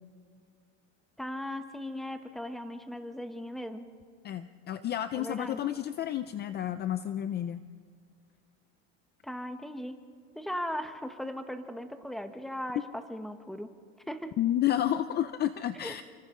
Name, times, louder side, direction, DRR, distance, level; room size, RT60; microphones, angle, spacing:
voice 1, 1.2-3.9 5.1-5.6 9.2-9.9 10.3-13.7 14.1-14.4 15.8-16.0, equal, ahead, 8 dB, 1.0 m, -38 dB
voice 2, 4.2-7.6 14.4-16.0, left 11 dB, 30° left, 12 dB, 0.5 m, -30 dB
30.0 x 25.5 x 3.8 m, 2.2 s
supercardioid pair, 135°, 32 cm